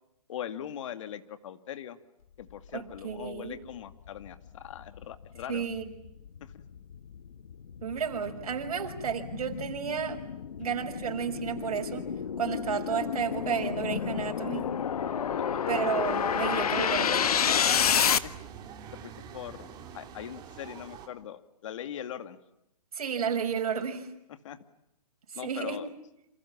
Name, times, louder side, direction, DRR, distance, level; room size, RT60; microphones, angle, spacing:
voice 1, 0.3-2.0 2.4-5.6 6.4-6.6 15.4-15.7 18.2-18.3 18.6-18.7 19.0-22.4 24.4-24.6 25.3-25.9, left 10 dB, 50° left, 10 dB, 2.4 m, -41 dB
voice 2, 2.7-3.6 5.5-5.9 7.8-10.2 10.6-12.1 12.4-14.7 15.7-17.4 22.9-24.1 25.4-25.8, right 7 dB, 65° right, 4 dB, 6.1 m, -32 dB
sound 1, 3.5-3.6 4.1-18.2, left 8 dB, 70° left, 1.6 m, -30 dB
sound 2, 16.0-21.1, right 8 dB, 20° right, 3.4 m, -45 dB
29.0 x 27.5 x 7.4 m, 0.85 s
hypercardioid pair, 145°, 20 cm